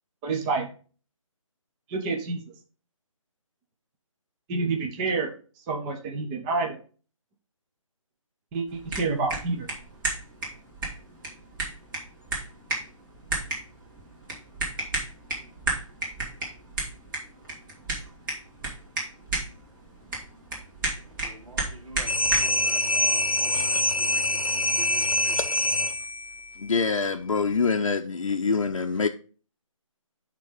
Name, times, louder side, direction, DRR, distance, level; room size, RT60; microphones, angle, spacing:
voice 1, 0.2-0.7 1.9-2.4 4.5-5.3 5.7-6.8 8.5-9.7, right 4 dB, 15° right, 0.7 m, -28 dB
sound 1, 8.7-22.6, right 2 dB, 35° right, 3.1 m, -33 dB
voice 2, 21.0-25.5 25.8-25.9, right 2 dB, 60° right, 2.6 m, -46 dB
sound 2, 22.1-26.3, left 1 dB, 85° left, 0.9 m, -24 dB
voice 3, 26.6-29.1, left 4 dB, 70° left, 0.7 m, -25 dB
9.3 x 3.7 x 5.1 m
figure-of-eight pair, 150°, 17 cm